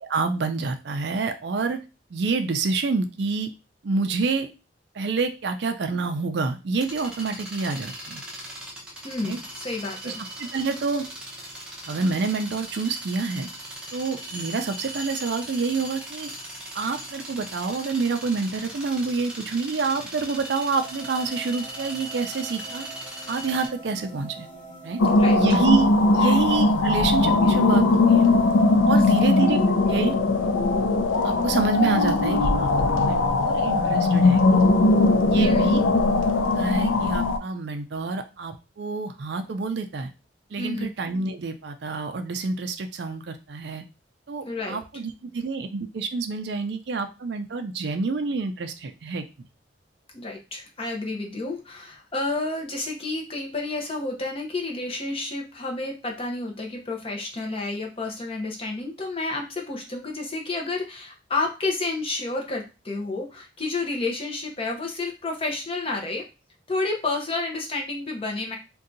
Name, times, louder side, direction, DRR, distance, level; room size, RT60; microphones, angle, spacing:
voice 1, 0.0-1.8 2.1-3.5 3.8-4.5 4.9-8.2 9.2-9.4 10.0-10.1 10.4-11.0 11.9-13.5 13.9-16.3 16.7-22.9 23.3-24.5 24.8-25.0 25.3-28.3 28.8-29.6 29.9-30.2 31.2-34.7 35.3-35.8 36.6-40.1 40.5-43.8 44.3-49.2, right 4 dB, 60° right, 7 dB, 0.4 m, -27 dB
sound 1, 6.8-23.7, right 1 dB, 5° right, 0.7 m, -39 dB
voice 2, 9.0-10.2 25.2-25.4 26.2-26.5 29.2-29.3 35.3-35.8 40.6-40.9 44.4-44.8 50.1-66.2 66.7-68.6, left 2 dB, 30° left, 1 dB, 0.7 m, -30 dB
sound 2, 20.7-28.7, right 3 dB, 55° left, 1.2 m, -44 dB
sound 3, 25.0-37.4, left 2 dB, 85° left, 0.4 m, -19 dB
2.7 x 2.3 x 3.7 m, 0.30 s
head